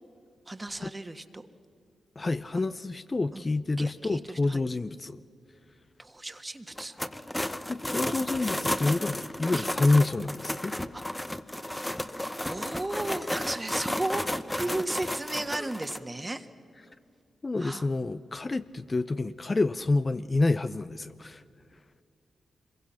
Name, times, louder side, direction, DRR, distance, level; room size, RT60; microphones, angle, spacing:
voice 1, 0.5-1.5 3.3-3.4 3.8-4.6 6.0-6.9 7.8-8.4 9.5-9.7 10.9-11.0 12.4-16.5 17.6-17.9, right 2 dB, 20° right, 9 dB, 1.6 m, -35 dB
voice 2, 2.2-5.2 7.7-10.7 17.4-21.4, left 3 dB, 35° left, 12 dB, 0.7 m, -28 dB
sound 1, 6.7-16.0, left 1 dB, 10° left, 1.0 m, -33 dB
26.0 x 22.5 x 5.8 m, 2.4 s
supercardioid pair, 45°, 0 cm